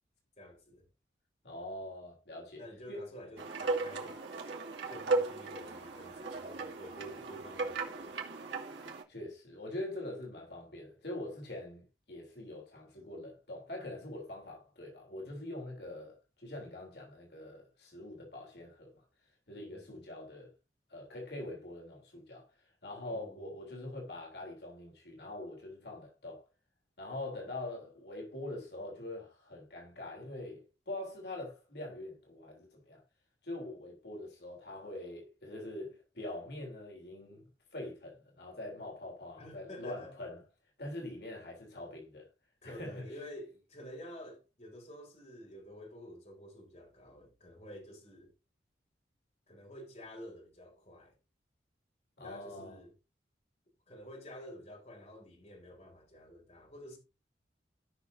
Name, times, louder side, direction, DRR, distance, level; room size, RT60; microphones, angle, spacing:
voice 1, 0.4-0.8 2.6-4.5 4.9-8.2 19.5-20.1 23.0-23.5 39.4-40.2 42.6-48.3 49.5-51.1 52.2-52.9 53.9-57.0, equal, 35° left, 3.9 m, -50 dB
voice 2, 1.4-3.1 9.1-18.9 19.5-20.5 20.9-26.4 27.0-33.0 33.4-40.4 40.8-42.3 42.6-43.0 52.2-52.8, left 1 dB, 65° left, 3.3 m, -44 dB
sound 1, 3.4-9.0, right 3 dB, 80° right, 2.3 m, -36 dB
16.5 x 5.9 x 2.7 m
head